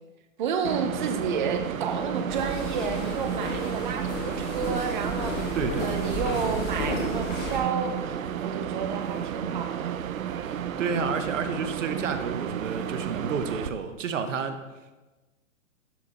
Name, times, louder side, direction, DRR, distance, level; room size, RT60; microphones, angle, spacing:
voice 1, 0.4-10.0, right 6 dB, 35° right, 7 dB, 0.7 m, -31 dB
sound 1, 0.6-13.7, right 9 dB, 85° right, 0.6 m, -32 dB
sound 2, 2.3-7.6, left 1 dB, 25° left, 1.7 m, -33 dB
voice 2, 5.5-6.1 10.4-14.6, right 5 dB, 65° right, 9 dB, 0.9 m, -30 dB
11.5 x 4.2 x 3.0 m, 1.2 s
hypercardioid pair, 145°, 40 cm